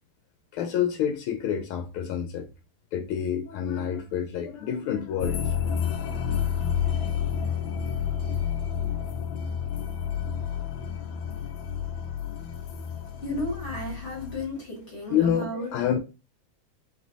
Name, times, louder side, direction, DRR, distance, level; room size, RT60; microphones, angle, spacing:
voice 1, 0.5-2.5 2.9-5.7 15.1-16.0, left 9 dB, 90° left, 1.5 m, -28 dB
sound 1, 5.2-14.5, left 8 dB, 75° left, 1.3 m, -30 dB
voice 2, 13.2-15.7, left 1 dB, 35° left, 1.3 m, -33 dB
3.3 x 3.2 x 3.8 m
omnidirectional pair, 2.3 m